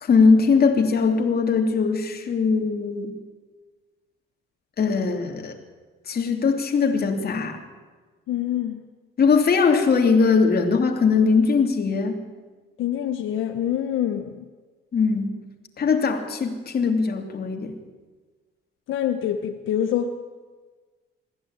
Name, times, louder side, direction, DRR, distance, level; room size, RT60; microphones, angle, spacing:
voice 1, 0.0-3.1 4.8-5.6 6.1-7.6 9.2-12.2 14.9-15.4 15.8-17.8, left 5 dB, 50° left, 4 dB, 3.0 m, -20 dB
voice 2, 8.3-8.8 12.8-14.5 18.9-20.1, left 10 dB, 80° left, 6 dB, 1.2 m, -25 dB
21.5 x 15.0 x 8.9 m, 1.4 s
cardioid pair, 90°, 20 cm